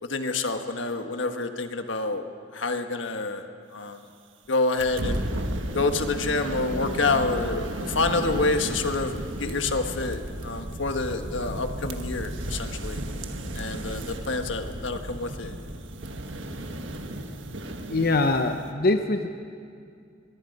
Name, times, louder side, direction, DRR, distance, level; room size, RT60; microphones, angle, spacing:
voice 1, 0.0-2.2 2.5-4.1 4.5-5.2 5.7-13.0 13.5-15.5, left 3 dB, 80° left, 6 dB, 1.4 m, -28 dB
sound 1, 4.8-18.7, right 1 dB, 80° right, 1.4 m, -34 dB
voice 2, 17.9-19.3, left 2 dB, 50° left, 6 dB, 0.8 m, -23 dB
23.0 x 22.5 x 5.4 m, 2.4 s
head